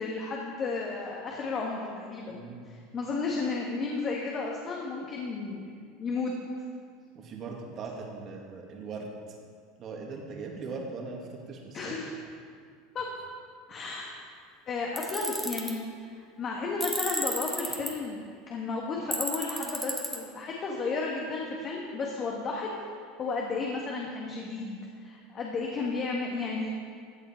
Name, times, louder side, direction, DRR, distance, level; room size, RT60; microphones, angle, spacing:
voice 1, 0.0-6.3 11.7-12.1 12.9-13.1 13.7-14.1 14.7-15.8 16.2-18.2 18.5-22.7 23.2-26.7, left 4 dB, 40° left, -2 dB, 1.7 m, -33 dB
voice 2, 2.3-2.7 7.1-9.1 9.8-12.1, right 4 dB, 45° right, 0 dB, 2.3 m, -40 dB
Tools, 15.0-15.7 16.8-17.9 19.1-20.2, equal, ahead, 1.6 m, -32 dB
15.5 x 8.1 x 4.5 m, 2.1 s
supercardioid pair, 100°, 0 cm